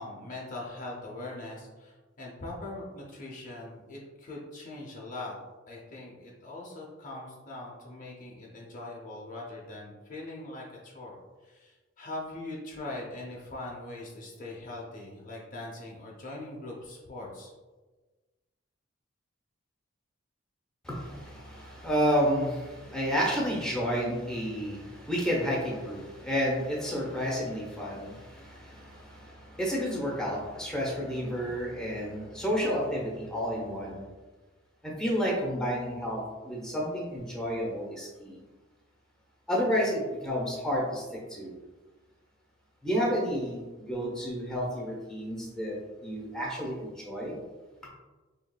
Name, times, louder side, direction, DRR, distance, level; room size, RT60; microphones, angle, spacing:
voice 1, 0.0-5.4 5.7-11.2 11.4-17.5, left 2 dB, 40° left, -2 dB, 0.6 m, -41 dB
voice 2, 20.8-34.0 34.8-38.4 39.5-41.5 42.8-47.4, equal, 5° left, -4 dB, 0.8 m, -31 dB
4.5 x 3.1 x 2.2 m, 1.2 s
head